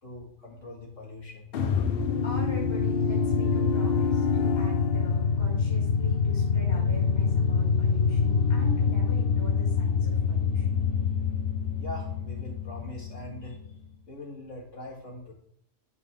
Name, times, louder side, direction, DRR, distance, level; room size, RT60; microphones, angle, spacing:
voice 1, 0.0-1.6 11.8-13.6 14.1-15.3, left 1 dB, 75° left, -2 dB, 2.2 m, -42 dB
sound 1, 1.5-13.8, left 5 dB, 55° left, 0.8 m, -25 dB
voice 2, 2.2-10.8, left 1 dB, 20° left, -3 dB, 2.2 m, -42 dB
11.0 x 5.8 x 3.4 m, 0.67 s
omnidirectional pair, 1.3 m